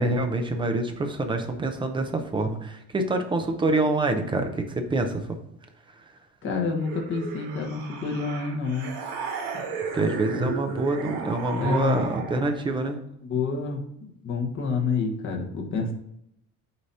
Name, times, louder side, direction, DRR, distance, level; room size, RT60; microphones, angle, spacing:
voice 1, 0.0-5.4 9.9-13.0, right 2 dB, 15° right, 6 dB, 0.5 m, -26 dB
voice 2, 6.4-8.9 10.3-10.5 11.6-12.0 13.2-15.9, left 4 dB, 35° left, 1 dB, 1.2 m, -28 dB
sound 1, 6.8-12.7, right 5 dB, 75° right, 1.7 m, -34 dB
8.1 x 2.9 x 5.3 m, 0.77 s
cardioid pair, 180°, 36 cm